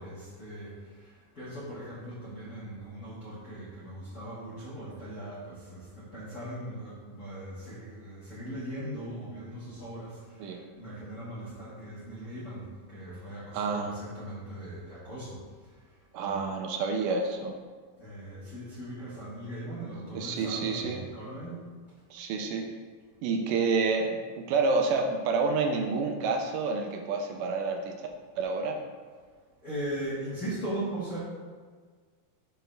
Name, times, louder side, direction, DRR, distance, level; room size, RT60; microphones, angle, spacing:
voice 1, 0.0-15.4 16.2-16.4 18.0-21.7 29.6-31.2, right 1 dB, 40° left, -11 dB, 1.4 m, -39 dB
voice 2, 13.5-13.9 16.1-17.6 20.1-21.1 22.1-22.6 23.2-28.0 28.4-28.8, right 4 dB, 80° right, 3 dB, 2.0 m, -29 dB
6.8 x 6.3 x 3.3 m, 1.6 s
omnidirectional pair, 4.1 m